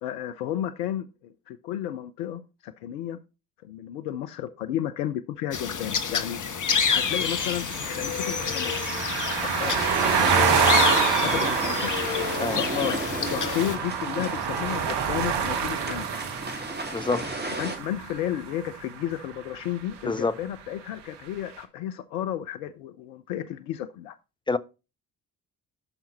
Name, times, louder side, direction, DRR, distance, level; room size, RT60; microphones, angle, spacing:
voice 1, 0.0-3.2 3.6-6.4 6.9-8.7 9.3-10.6 11.0-11.9 12.5-16.1 17.6-24.2, left 11 dB, 80° left, 0.7 m, -33 dB
sound 1, 5.5-13.8, left 6 dB, 40° left, 1.3 m, -28 dB
sound 2, 6.8-18.8, right 7 dB, 55° right, 1.5 m, -27 dB
sound 3, 9.6-17.8, right 2 dB, 20° right, 2.8 m, -34 dB
voice 2, 16.9-17.3 20.1-20.4 24.5-24.6, left 3 dB, 10° left, 0.6 m, -26 dB
11.0 x 5.8 x 4.1 m
hypercardioid pair, 40°, 48 cm